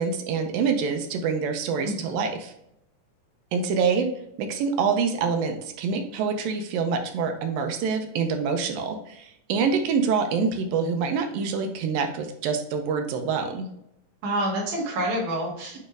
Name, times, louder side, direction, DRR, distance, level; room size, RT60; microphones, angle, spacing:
voice 1, 0.0-2.5 3.5-4.1 4.4-13.7, right 5 dB, 85° right, 5 dB, 2.4 m, -26 dB
voice 2, 1.8-2.2 14.2-15.8, right 1 dB, 65° right, -3 dB, 3.3 m, -28 dB
8.8 x 3.2 x 3.4 m, 0.77 s
omnidirectional pair, 4.1 m